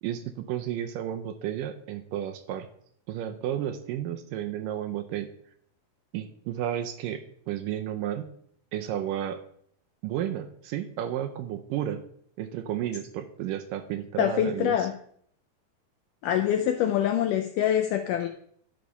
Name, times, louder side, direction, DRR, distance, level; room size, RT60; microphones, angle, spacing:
voice 1, 0.0-2.7 3.1-5.3 6.1-8.3 8.7-9.4 10.0-12.0 12.4-14.9, right 11 dB, 80° right, 8 dB, 2.1 m, -32 dB
voice 2, 14.2-14.9 16.2-18.3, left 10 dB, 80° left, 7 dB, 1.9 m, -25 dB
11.5 x 5.9 x 5.5 m, 0.64 s
omnidirectional pair, 4.3 m